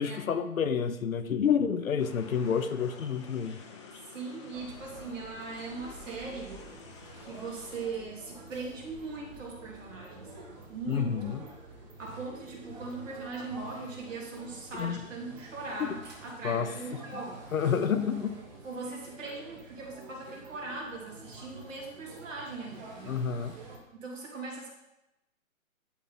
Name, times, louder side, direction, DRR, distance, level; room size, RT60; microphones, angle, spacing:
voice 1, 0.0-3.6 10.9-11.4 14.8-15.0 15.8-15.9 16.4-16.7 17.5-18.3 23.0-23.5, left 7 dB, 75° left, 9 dB, 0.9 m, -29 dB
sound 1, 2.0-7.9, left 5 dB, 20° left, 0.6 m, -51 dB
voice 2, 4.0-6.6 7.2-10.3 10.7-11.4 12.0-17.5 18.6-23.3 23.9-24.7, right 3 dB, 65° right, -2 dB, 2.8 m, -40 dB
sound 2, 4.5-23.8, right 3 dB, 30° right, 1.3 m, -48 dB
sound 3, 5.6-15.8, equal, 5° right, 1.0 m, -56 dB
11.0 x 3.7 x 4.0 m, 0.90 s
hypercardioid pair, 150°, 42 cm